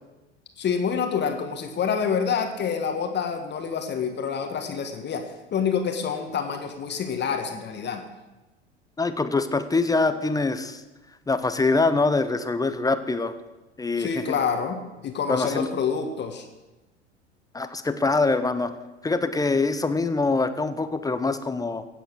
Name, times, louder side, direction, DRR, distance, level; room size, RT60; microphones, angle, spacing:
voice 1, 0.6-8.0 14.0-16.4, left 6 dB, 30° left, 5 dB, 1.5 m, -27 dB
voice 2, 9.0-10.8 11.3-13.3 13.8-14.4 15.3-15.7 17.5-18.7 19.0-21.9, left 3 dB, 10° left, 11 dB, 0.8 m, -24 dB
16.5 x 8.0 x 6.3 m, 1.1 s
figure-of-eight pair, 80°, 34 cm